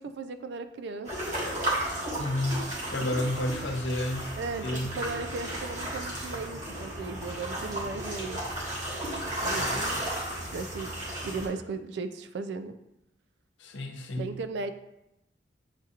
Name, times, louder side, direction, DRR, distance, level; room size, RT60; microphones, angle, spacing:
voice 1, 0.0-1.4 4.4-8.4 9.4-9.8 10.5-10.9 11.2-12.8 14.2-14.7, right 3 dB, 65° right, 10 dB, 0.3 m, -36 dB
sound 1, 1.0-11.5, right 1 dB, 45° right, 1.2 m, -34 dB
voice 2, 2.2-4.3 4.6-5.0 9.6-10.0 13.6-14.4, left 1 dB, 85° left, 4 dB, 0.6 m, -31 dB
7.2 x 2.4 x 2.8 m, 0.86 s
head